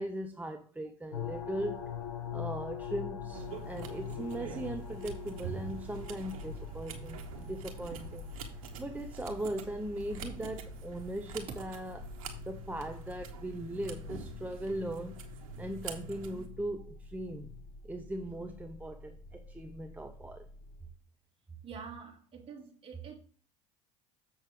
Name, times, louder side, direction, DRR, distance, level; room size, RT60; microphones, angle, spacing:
voice 1, 0.0-2.0 2.3-8.3 8.8-12.0 12.5-15.2 15.6-17.5 17.8-20.5, right 1 dB, 10° right, 5 dB, 0.8 m, -39 dB
sound 1, 1.1-20.9, left 5 dB, 90° left, 1.4 m, -44 dB
sound 2, 3.3-16.5, right 7 dB, 80° right, 1.4 m, -47 dB
voice 2, 21.6-23.1, right 6 dB, 30° right, 0 dB, 3.0 m, -47 dB
7.4 x 6.3 x 3.8 m, 0.42 s
hypercardioid pair, 85°, 18 cm